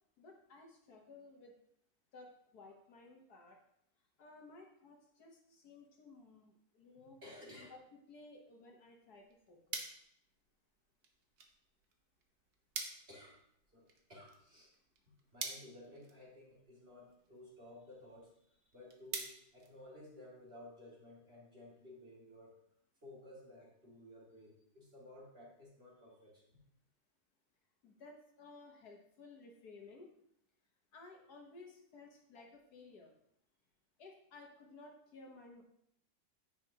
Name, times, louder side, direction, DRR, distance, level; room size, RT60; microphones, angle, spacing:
voice 1, 0.2-1.5 2.1-3.6 4.2-7.2 7.6-7.7 8.1-10.0 27.8-30.1 30.9-33.1 34.0-35.6, left 3 dB, 65° left, 1 dB, 1.6 m, -57 dB
voice 2, 7.2-7.7 13.1-13.4 13.7-14.7 15.3-22.6 23.0-26.4, left 1 dB, 35° right, -5 dB, 2.6 m, -55 dB
sound 1, 9.0-20.4, right 4 dB, 50° right, 1.2 m, -50 dB
9.6 x 7.7 x 2.8 m, 0.73 s
omnidirectional pair, 1.9 m